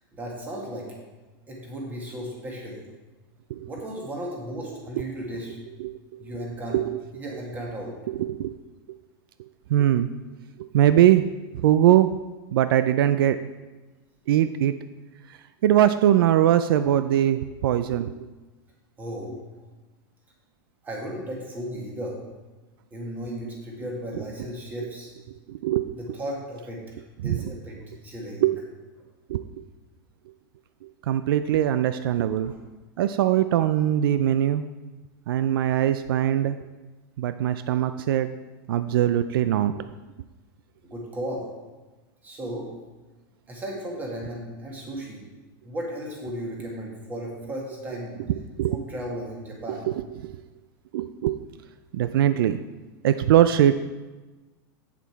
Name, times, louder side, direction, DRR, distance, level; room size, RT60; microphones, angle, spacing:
voice 1, 0.1-0.9 1.5-2.8 3.7-5.6 6.2-6.8 7.2-8.0 19.0-19.4 20.8-22.2 22.9-25.1 25.9-26.8 27.2-27.8 28.0-28.5 32.4-32.6 40.9-41.5 42.2-42.7 43.5-45.2 45.6-48.2 48.7-49.9, equal, 15° right, -2 dB, 1.9 m, -35 dB
voice 2, 8.1-8.5 9.7-10.1 10.6-11.2 11.5-12.1 12.5-13.4 14.3-14.7 15.6-18.1 25.5-25.9 27.2-27.5 28.4-28.6 29.3-29.4 31.1-32.5 33.0-34.6 35.3-36.6 37.2-38.3 38.7-39.9 48.6-48.8 49.9-50.0 50.2-50.4 50.9-51.4 51.9-52.6 53.0-53.7, right 11 dB, 75° right, 11 dB, 0.4 m, -21 dB
8.4 x 7.0 x 4.5 m, 1.2 s
supercardioid pair, 165°, 12 cm